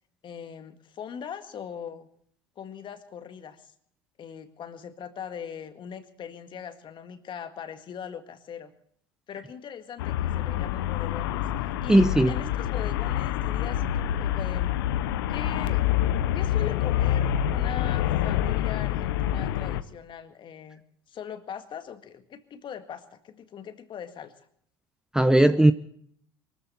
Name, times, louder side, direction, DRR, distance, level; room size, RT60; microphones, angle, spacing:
voice 1, 0.2-2.1 2.6-3.7 4.2-8.7 9.3-14.7 15.3-15.9 16.3-20.8 21.1-24.5, left 8 dB, 40° left, 9 dB, 1.9 m, -40 dB
Traffic noise roadway noise, 10.0-19.8, left 11 dB, 70° left, 0.9 m, -27 dB
voice 2, 11.9-12.3 25.1-25.7, right 1 dB, 5° right, 12 dB, 0.8 m, -18 dB
23.0 x 14.5 x 4.2 m, 0.65 s
hypercardioid pair, 75°, 12 cm